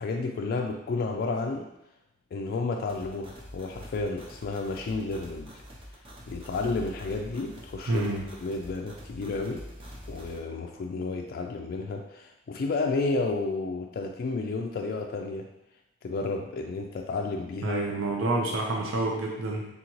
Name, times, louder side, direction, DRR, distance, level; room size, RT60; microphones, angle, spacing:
voice 1, 0.0-1.7 2.3-5.6 6.3-8.1 8.4-9.6 10.1-15.5 16.0-17.9, left 3 dB, 50° left, 2 dB, 0.3 m, -31 dB
sound 1, 2.9-10.4, equal, 30° right, 0.6 m, -45 dB
voice 2, 7.9-8.2 17.6-19.7, right 2 dB, 75° right, -1 dB, 0.6 m, -28 dB
3.8 x 3.5 x 3.0 m, 0.89 s
head